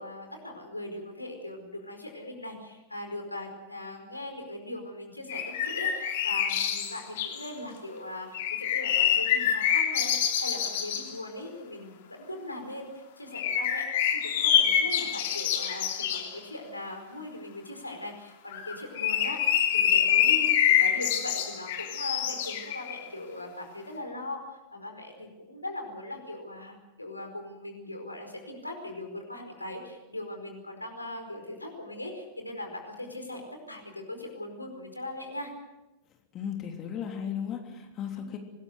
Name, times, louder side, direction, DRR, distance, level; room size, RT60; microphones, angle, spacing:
voice 1, 0.0-13.8 14.1-19.4 19.7-35.5 38.1-38.3, left 1 dB, 85° left, 4 dB, 4.8 m, -40 dB
sound 1, 5.3-7.5 8.3-11.1 13.3-16.3 18.5-23.1, left 9 dB, 55° left, 3.2 m, -26 dB
voice 2, 36.3-38.4, left 8 dB, 30° left, 3 dB, 3.2 m, -35 dB
25.0 x 20.5 x 6.7 m, 1.0 s
figure-of-eight pair, 90°, 0 cm